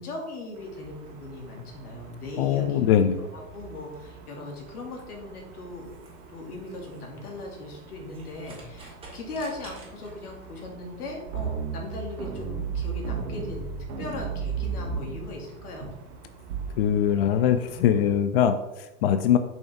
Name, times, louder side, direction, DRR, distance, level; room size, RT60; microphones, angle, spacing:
voice 1, 0.0-2.8 3.2-5.9 6.3-13.7 14.0-15.9, left 2 dB, 75° left, 1 dB, 2.3 m, -38 dB
sound 1, 0.5-18.1, right 4 dB, 40° right, 1.7 m, -49 dB
voice 2, 2.4-3.3 16.8-19.4, left 9 dB, 45° left, 10 dB, 0.4 m, -22 dB
sound 2, 4.7-10.5, right 2 dB, 10° right, 2.0 m, -52 dB
sound 3, 11.3-15.3 15.8-15.9 16.5-17.0, right 6 dB, 65° right, 1.6 m, -32 dB
7.1 x 5.5 x 3.3 m, 1.0 s
hypercardioid pair, 115°, 45 cm